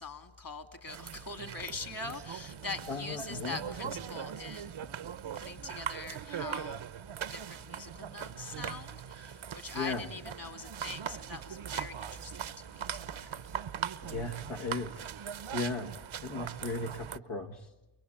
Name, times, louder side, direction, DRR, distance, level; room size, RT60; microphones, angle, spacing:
voice 1, 0.0-4.8 5.3-6.8 7.3-13.4, left 3 dB, 45° left, 9 dB, 2.7 m, -43 dB
sound 1, 0.9-17.2, right 8 dB, 75° right, 0.9 m, -41 dB
voice 2, 2.9-3.6 9.7-10.1 14.0-15.0 15.5-15.9 16.2-17.7, left 3 dB, 75° left, 1 dB, 1.8 m, -36 dB
30.0 x 22.5 x 8.6 m, 1.0 s
cardioid pair, 50°, 48 cm